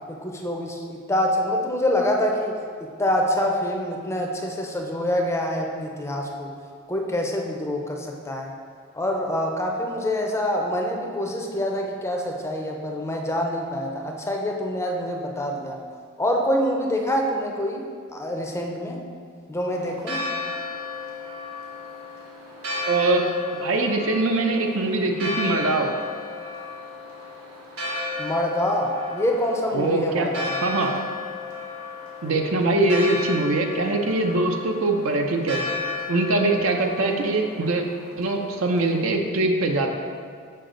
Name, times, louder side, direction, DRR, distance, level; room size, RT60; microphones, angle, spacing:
voice 1, 0.1-6.5 6.9-8.5 8.9-15.8 16.2-19.0 19.5-20.2 28.2-30.6, left 1 dB, 15° left, 1 dB, 0.5 m, -26 dB
Church bell, 19.7-39.1, left 3 dB, 85° right, 1.5 m, -34 dB
voice 2, 22.9-23.2 23.5-25.9 29.7-30.3 30.6-31.0 32.2-35.6 36.1-37.8 38.2-39.9, right 2 dB, 70° right, 3 dB, 0.6 m, -22 dB
6.6 x 5.1 x 3.8 m, 2.1 s
head